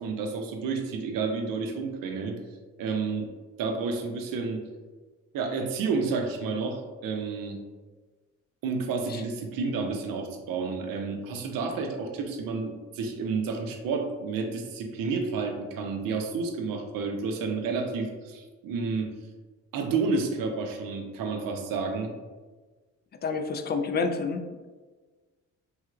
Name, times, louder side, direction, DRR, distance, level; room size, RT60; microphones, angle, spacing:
voice 1, 0.0-2.4 2.8-3.3 3.6-4.6 5.3-7.6 8.6-19.1 19.7-22.1, right 4 dB, 65° right, 3 dB, 0.6 m, -30 dB
voice 2, 23.2-24.5, left 4 dB, 30° left, 6 dB, 0.4 m, -28 dB
3.2 x 2.7 x 2.4 m, 1.3 s
hypercardioid pair, 50°, 37 cm